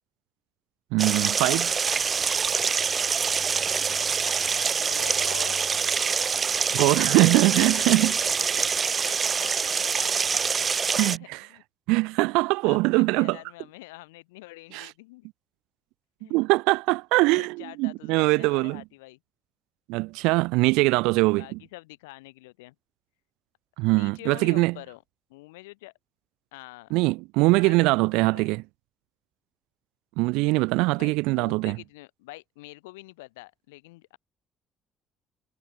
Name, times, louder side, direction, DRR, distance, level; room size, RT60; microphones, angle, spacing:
voice 1, 0.9-1.7 6.7-8.1 11.0-11.4 11.9-13.4 14.7-14.9 16.3-18.8 19.9-21.6 23.8-24.7 26.9-28.6 30.2-31.8, right 24 dB, 65° right, 0.8 m, -22 dB
sound 1, 1.0-11.2, right 6 dB, 35° right, 1.6 m, -25 dB
voice 2, 4.8-5.6 6.7-6.8 7.3-11.6 12.6-15.3 16.2-16.4 17.3-19.2 21.4-22.8 23.9-25.0 25.3-25.9 26.5-26.9 27.5-28.5 31.0-34.2, left 22 dB, 70° left, 6.8 m, -45 dB
figure-of-eight pair, 45°, 0 cm